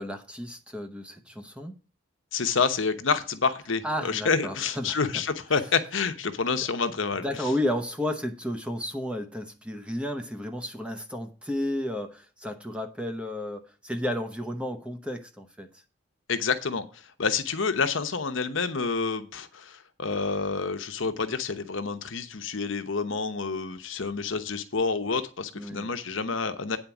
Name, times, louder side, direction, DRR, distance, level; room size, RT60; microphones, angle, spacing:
voice 1, 0.0-1.7 3.8-5.2 7.2-15.7 25.5-25.9, left 1 dB, 5° right, 0.8 m, -32 dB
voice 2, 2.3-7.3 16.3-16.9 17.2-26.8, left 5 dB, 65° left, 0.9 m, -28 dB
9.1 x 4.5 x 7.1 m
head